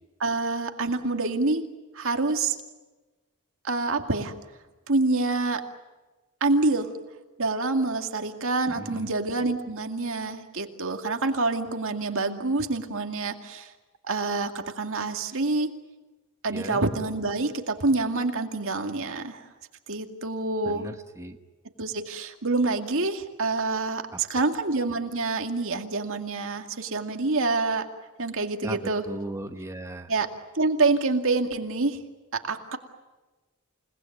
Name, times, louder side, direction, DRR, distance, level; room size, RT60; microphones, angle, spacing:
voice 1, 0.2-1.6 1.9-2.6 3.6-4.3 4.9-5.6 6.4-6.9 7.4-13.7 14.0-15.7 16.4-19.4 19.9-20.9 21.8-27.9 28.2-29.1 30.1-30.3 30.5-32.0 32.3-32.8, right 3 dB, 65° right, 5 dB, 2.3 m, -27 dB
voice 2, 8.7-9.1 16.5-16.8 20.6-21.4 28.6-28.8 29.1-30.1, right 1 dB, 15° right, 5 dB, 1.1 m, -36 dB
29.0 x 19.0 x 9.3 m, 1.2 s
head